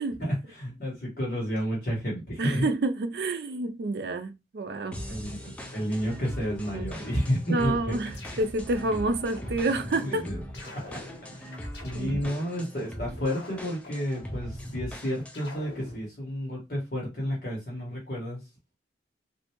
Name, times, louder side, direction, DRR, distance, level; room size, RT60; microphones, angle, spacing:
voice 1, 0.2-2.7 5.1-8.1 10.0-10.4 10.6-11.0 11.3-11.5 11.8-18.4, equal, 50° left, 1.2 m, -31 dB
voice 2, 2.4-5.0 6.7-6.9 7.5-10.3 11.9-12.2, right 2 dB, 60° right, 0.4 m, -29 dB
sound 1, 4.9-15.6, equal, 5° left, 0.4 m, -40 dB
sound 2, 8.1-8.9 9.3-10.1 10.5-12.5 12.9-14.9 15.3-16.1, left 1 dB, 80° left, 1.1 m, -43 dB
3.2 x 2.5 x 2.9 m
head